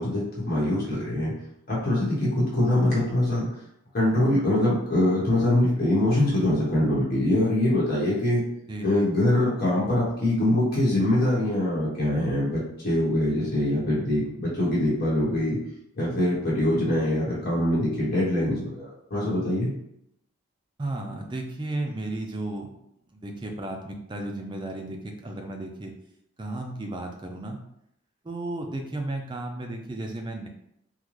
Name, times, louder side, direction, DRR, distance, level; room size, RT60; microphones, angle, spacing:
voice 1, 0.0-1.3 1.7-3.5 3.9-8.4 8.8-15.6 16.0-19.7, left 1 dB, 45° left, -7 dB, 1.0 m, -23 dB
voice 2, 8.7-9.1 20.8-22.7 23.1-25.9 26.4-27.6 28.2-30.5, right 2 dB, 20° right, 2 dB, 0.4 m, -34 dB
3.7 x 2.2 x 3.1 m, 0.77 s
head